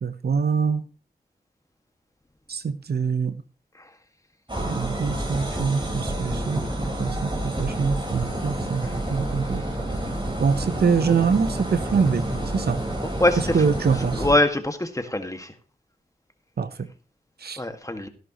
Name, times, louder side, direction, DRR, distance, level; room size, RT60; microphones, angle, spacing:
voice 1, 0.0-0.8 2.5-3.3 4.7-6.6 7.0-9.6 10.4-12.2 12.5-12.8 13.4-14.2 16.6-16.7 17.4-17.6, right 5 dB, 75° right, 12 dB, 0.9 m, -24 dB
sound 1, 4.5-14.3, right 1 dB, 30° right, 4.8 m, -29 dB
voice 2, 13.2-13.6 14.2-15.5 17.6-18.1, left 1 dB, 20° left, 6 dB, 1.9 m, -23 dB
16.5 x 10.5 x 3.1 m, 0.34 s
cardioid pair, 45°, 16 cm